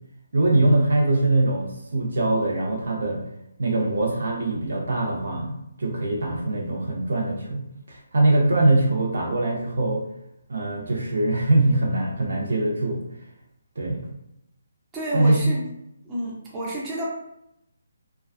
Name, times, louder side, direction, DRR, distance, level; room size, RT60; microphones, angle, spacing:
voice 1, 0.3-3.2 3.6-10.0 10.5-13.0 13.8-14.1 15.1-15.5, right 2 dB, 75° right, 0 dB, 0.6 m, -22 dB
voice 2, 14.9-15.6 16.0-17.0, right 1 dB, 15° right, -5 dB, 0.5 m, -30 dB
2.3 x 2.2 x 2.4 m, 0.81 s
hypercardioid pair, 160°, 0 cm